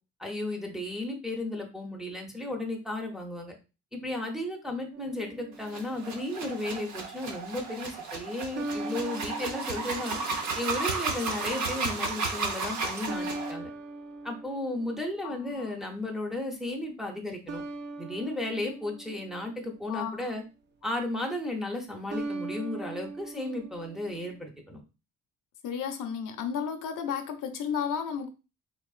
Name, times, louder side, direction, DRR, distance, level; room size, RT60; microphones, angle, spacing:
voice 1, 0.2-3.6 3.9-13.7 14.2-17.6 18.0-20.4 20.8-24.8, left 1 dB, ahead, 0.7 m, -34 dB
sound 1, 4.9-6.3 8.5-11.0 13.1-15.7 17.5-20.0 22.1-24.4, right 2 dB, 35° right, 0.5 m, -40 dB
sound 2, 5.6-13.5, right 4 dB, 65° right, 0.8 m, -33 dB
voice 2, 15.2-15.7 19.9-20.3 25.6-28.3, left 7 dB, 80° left, 0.6 m, -33 dB
3.8 x 2.9 x 2.4 m
cardioid pair, 135°, 31 cm